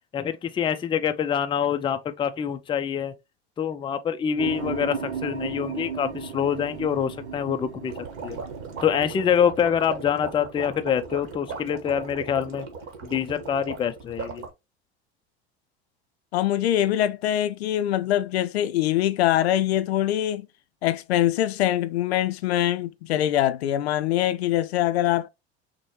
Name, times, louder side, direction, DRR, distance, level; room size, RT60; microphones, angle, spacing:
voice 1, 0.1-3.1 3.6-7.9 8.2-8.4 8.8-12.7 13.0-14.4, left 8 dB, 15° left, 0.4 m, -25 dB
sound 1, 4.4-12.7, right 6 dB, 85° right, 0.7 m, -37 dB
sound 2, 7.9-14.5, right 5 dB, 45° right, 1.4 m, -38 dB
voice 2, 16.3-20.5 20.8-25.3, left 12 dB, 70° left, 0.5 m, -23 dB
6.1 x 2.2 x 3.0 m
hypercardioid pair, 80°, 33 cm